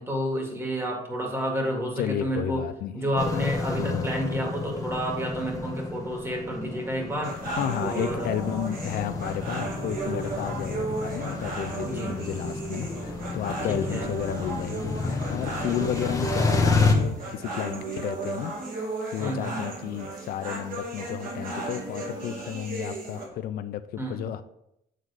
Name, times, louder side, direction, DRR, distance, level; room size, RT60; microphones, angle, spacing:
voice 1, 0.0-2.6 2.9-7.4 7.8-8.3 11.8-12.1 13.7-14.1 15.7-15.9 19.2-19.6 24.0-24.3, equal, 15° right, 0 dB, 2.0 m, -30 dB
voice 2, 2.0-2.9 3.8-4.1 7.5-24.4, left 11 dB, 65° left, 10 dB, 0.4 m, -32 dB
sound 1, 3.2-16.9, left 3 dB, 20° left, 1.1 m, -30 dB
sound 2, 7.2-23.2, right 3 dB, 55° right, 2.5 m, -35 dB
7.8 x 3.8 x 4.8 m, 0.80 s
cardioid pair, 110°, 17 cm